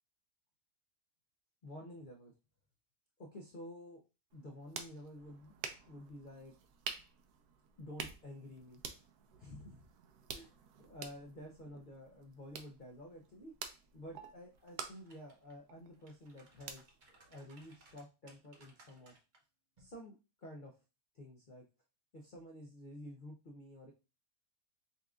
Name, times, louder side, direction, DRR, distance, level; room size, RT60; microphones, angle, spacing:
voice 1, 1.6-2.3 3.2-4.0 4.3-5.5 5.9-6.5 7.8-8.8 9.4-9.8 10.3-10.5 10.8-13.5 13.9-19.1 19.8-20.8 21.1-21.6 22.1-23.9, left 1 dB, 65° left, -1 dB, 0.4 m, -51 dB
sound 1, 4.3-18.0, right 6 dB, 75° right, 1.1 m, -50 dB
sound 2, 14.6-15.5 15.9-19.4 19.8-20.0, right 2 dB, 45° right, 0.6 m, -64 dB
5.4 x 2.5 x 2.3 m, 0.30 s
omnidirectional pair, 1.7 m